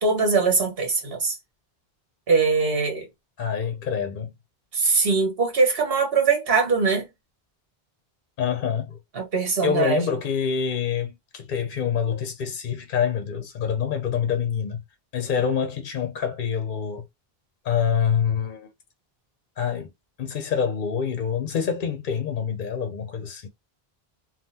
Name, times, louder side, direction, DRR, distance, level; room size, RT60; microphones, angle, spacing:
voice 1, 0.0-1.3 2.3-3.1 4.7-7.1 9.1-10.0, right 4 dB, 70° right, 1.3 m, -22 dB
voice 2, 3.4-4.3 8.4-9.0 9.6-14.8 15.1-17.1 17.6-18.7 19.6-19.9 20.2-23.5, left 7 dB, 60° left, 0.7 m, -26 dB
3.5 x 2.3 x 2.7 m
omnidirectional pair, 1.0 m